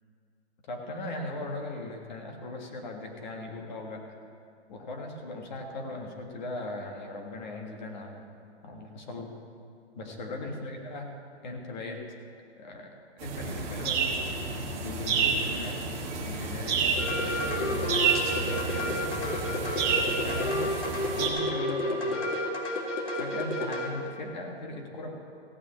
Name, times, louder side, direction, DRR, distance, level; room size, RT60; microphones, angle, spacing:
voice 1, 0.7-4.0 4.7-8.3 8.6-9.3 9.9-11.1 11.4-12.0 12.6-14.2 14.8-15.8 16.2-17.9 18.4-19.2 20.0-20.8 21.2-22.2 23.2-25.2, left 2 dB, 40° left, 2 dB, 1.7 m, -38 dB
sound 1, 13.2-21.3, right 5 dB, 20° right, 1.4 m, -30 dB
sound 2, 17.0-23.9, left 1 dB, 80° left, 2.5 m, -31 dB
15.5 x 6.1 x 8.4 m, 2.4 s
hypercardioid pair, 165°, 35 cm